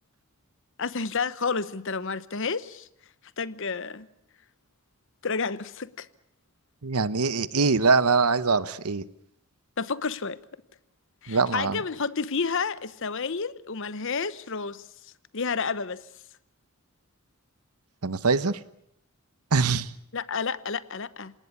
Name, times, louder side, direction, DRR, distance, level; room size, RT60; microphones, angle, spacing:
voice 1, 0.8-2.9 3.4-4.1 5.2-6.1 9.8-10.4 11.2-14.9 15.3-16.0 20.1-21.3, left 5 dB, 60° left, 0.9 m, -30 dB
voice 2, 6.8-9.0 11.3-11.8 18.0-18.6 19.5-19.9, right 4 dB, 85° right, 1.1 m, -23 dB
27.5 x 18.5 x 8.5 m
head